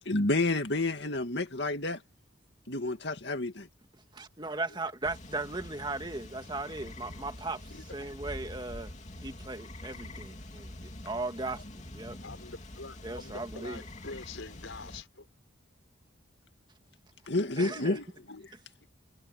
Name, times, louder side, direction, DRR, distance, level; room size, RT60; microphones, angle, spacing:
voice 1, 0.1-2.0 2.7-3.7 17.3-18.5, left 2 dB, 60° left, 2.4 m, -30 dB
voice 2, 4.1-8.9 9.2-12.2 13.0-13.8 17.6-18.0, right 2 dB, 25° right, 2.0 m, -37 dB
sound 1, 5.0-15.0, left 1 dB, 35° left, 2.7 m, -46 dB
voice 3, 12.2-15.3 17.3-17.5 18.8-18.9, left 3 dB, 90° left, 4.7 m, -45 dB
head